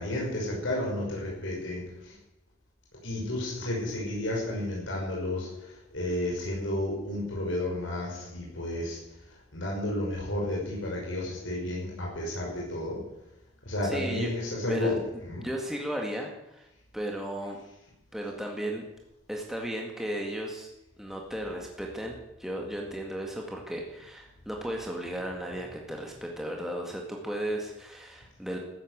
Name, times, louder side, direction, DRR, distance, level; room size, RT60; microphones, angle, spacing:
voice 1, 0.0-2.2 3.0-9.0 9.5-13.0 13.6-15.0 15.2-15.4, left 1 dB, 75° left, -3 dB, 5.7 m, -32 dB
voice 2, 13.8-14.3 14.7-14.9 15.4-16.7 16.9-17.6 18.1-18.9 19.3-20.7 21.0-28.6, right 1 dB, ahead, 0 dB, 2.0 m, -35 dB
14.5 x 11.5 x 8.1 m, 0.92 s
head